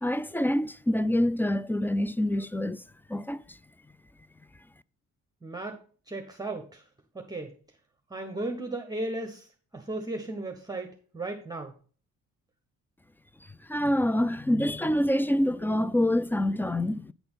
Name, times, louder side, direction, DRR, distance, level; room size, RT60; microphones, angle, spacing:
voice 1, 0.0-2.8 3.1-3.6 13.7-17.1, left 1 dB, 5° left, 0.3 m, -26 dB
voice 2, 5.4-5.8 6.1-6.8 7.1-7.5 8.1-9.5 9.7-11.7, right 2 dB, 15° right, 1.2 m, -35 dB
9.0 x 4.2 x 5.6 m
cardioid pair, 90°, 30 cm